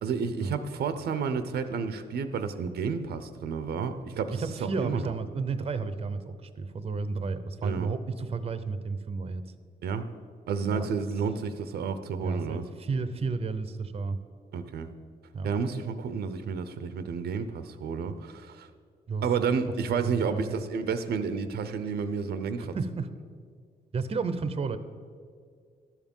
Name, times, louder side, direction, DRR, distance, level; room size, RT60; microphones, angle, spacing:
voice 1, 0.0-4.4 4.8-5.1 7.6-7.9 9.8-10.1 10.5-12.6 14.5-14.9 15.4-18.7 19.2-22.8, right 6 dB, 90° right, 10 dB, 0.7 m, -31 dB
voice 2, 4.4-9.4 10.7-10.9 12.2-14.2 15.3-15.5 19.1-19.2 19.9-20.5 22.6-23.1 23.9-24.8, right 4 dB, 40° right, 11 dB, 0.6 m, -32 dB
12.0 x 7.3 x 5.4 m, 2.1 s
cardioid pair, 120°, 16 cm